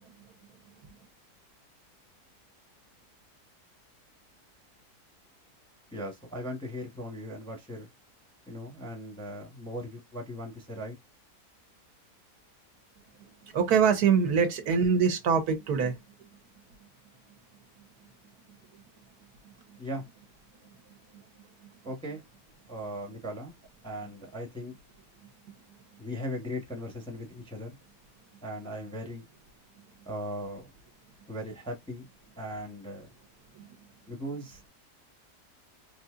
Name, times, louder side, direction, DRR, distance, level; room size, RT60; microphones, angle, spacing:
voice 1, 5.9-7.9 8.5-11.0 19.8-20.0 21.8-22.2 22.7-23.5 23.8-24.7 26.0-27.8 28.4-29.2 30.1-30.7 31.3-32.1 32.4-33.1 34.1-34.7, equal, 5° left, 0.7 m, -38 dB
voice 2, 13.5-16.0, right 6 dB, 70° right, 1.2 m, -23 dB
3.9 x 2.8 x 2.3 m
omnidirectional pair, 1.8 m